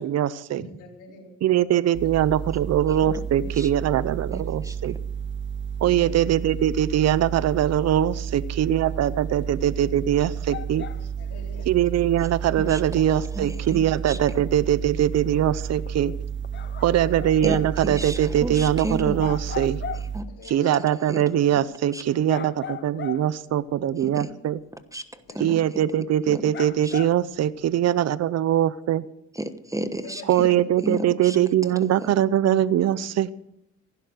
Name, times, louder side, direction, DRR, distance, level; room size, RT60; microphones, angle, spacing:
voice 1, 0.0-0.6 1.4-5.0 5.8-10.9 11.7-16.1 16.8-19.8 20.5-24.6 25.4-29.0 30.3-33.3, right 11 dB, 60° right, 17 dB, 0.7 m, -22 dB
voice 2, 0.6-1.3 2.0-2.1 3.8-4.1 5.8-6.2 8.8-9.0 10.8-11.7 14.8-14.9 16.5-17.2 20.3-20.8 22.1-22.5 25.3-25.7 30.0-30.6, left 4 dB, 85° left, 1 dB, 4.0 m, -45 dB
sound 1, 1.9-20.2, right 7 dB, 40° right, 1.6 m, -32 dB
voice 3, 2.9-3.7 4.3-4.9 12.6-14.2 17.4-19.3 19.9-21.2 21.9-22.0 24.0-24.3 24.9-26.5 26.8-27.0 29.3-30.5 30.8-31.4 31.7-32.2, right 1 dB, 10° right, 10 dB, 1.2 m, -34 dB
sound 2, 9.4-9.5 10.0-10.1 10.5-11.3 11.7-11.8 12.2-12.3 12.8-12.9 13.4-13.5 14.1-14.2 14.7-14.8 15.2-15.9 16.3-17.8 18.2-18.3 18.9-19.0 19.2-20.3 20.9-21.0 21.6-21.7 22.3-23.5 24.0-24.1 24.7-24.8 25.4-25.5 26.2-26.3 26.5-27.7, left 9 dB, 40° left, 0.6 m, -38 dB
15.5 x 11.5 x 6.5 m, 0.79 s
cardioid pair, 90°, 30 cm